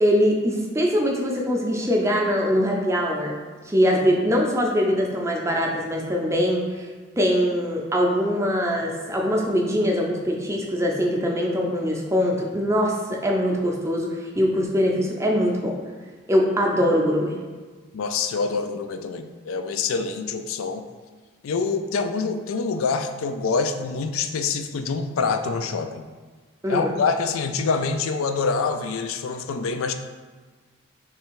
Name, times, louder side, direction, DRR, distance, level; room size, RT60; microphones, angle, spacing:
voice 1, 0.0-6.9 7.2-15.8 16.3-17.4 26.6-26.9, equal, 15° right, -1 dB, 0.5 m, -22 dB
voice 2, 17.9-20.8 21.4-26.0 26.7-29.9, left 4 dB, 85° left, 8 dB, 0.4 m, -26 dB
3.3 x 3.3 x 4.6 m, 1.4 s
head